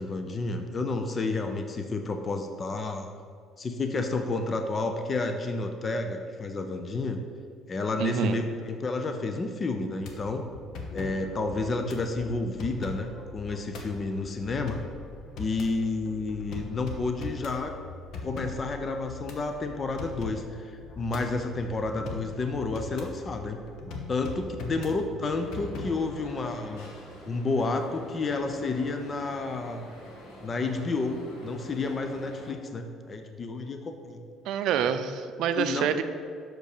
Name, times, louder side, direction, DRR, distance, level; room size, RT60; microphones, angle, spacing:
voice 1, 0.0-3.1 3.6-7.2 7.7-10.5 10.9-14.8 15.4-17.7 18.2-23.6 24.1-26.9 27.3-29.9 30.4-34.2 35.6-35.9, left 3 dB, 25° left, 6 dB, 0.6 m, -30 dB
voice 2, 8.0-8.4 34.5-36.0, right 9 dB, 65° right, 10 dB, 0.5 m, -27 dB
sound 1, 10.0-26.3, left 3 dB, 60° left, 1.1 m, -41 dB
sound 2, 25.2-32.5, equal, 85° left, 1.8 m, -47 dB
6.0 x 5.3 x 6.6 m, 2.2 s
cardioid pair, 145°, 0 cm